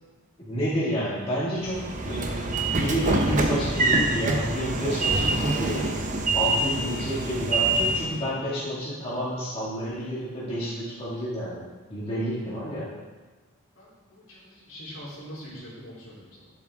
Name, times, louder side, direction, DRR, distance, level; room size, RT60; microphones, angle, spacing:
voice 1, 0.4-5.9 6.3-12.9, equal, 25° left, -9 dB, 2.2 m, -30 dB
Train / Sliding door, 1.7-8.2, right 2 dB, 35° right, 0.8 m, -25 dB
voice 2, 13.8-16.5, equal, 60° left, -7 dB, 3.5 m, -43 dB
11.5 x 7.4 x 3.7 m, 1.3 s
head